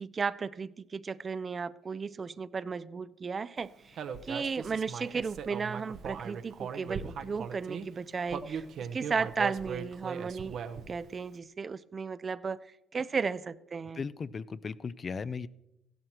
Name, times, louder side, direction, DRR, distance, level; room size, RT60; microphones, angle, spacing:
voice 1, 0.0-10.6 10.9-12.6 12.9-14.0, right 5 dB, 35° right, 0.4 m, -34 dB
Human voice, 4.0-7.9 8.3-11.0, right 7 dB, 60° right, 0.8 m, -39 dB
voice 2, 13.9-15.5, left 5 dB, 40° left, 0.5 m, -37 dB
15.0 x 12.5 x 3.0 m
supercardioid pair, 65°, 0 cm